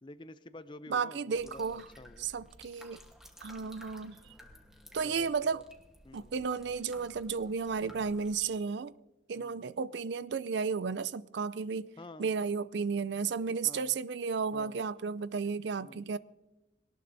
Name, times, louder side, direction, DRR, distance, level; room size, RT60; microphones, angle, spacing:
voice 1, 0.0-2.3 4.9-5.6 6.0-6.3 9.3-9.7 12.0-12.3 13.6-14.0 14.5-14.8 15.8-16.1, left 2 dB, 25° left, 0.5 m, -50 dB
voice 2, 0.9-1.9 2.2-3.0 3.4-4.2 4.9-5.6 6.1-8.9 9.3-11.9 12.2-16.2, right 5 dB, 65° right, 0.4 m, -33 dB
sound 1, 1.3-8.5, equal, 5° right, 1.2 m, -55 dB
22.0 x 18.5 x 2.7 m
head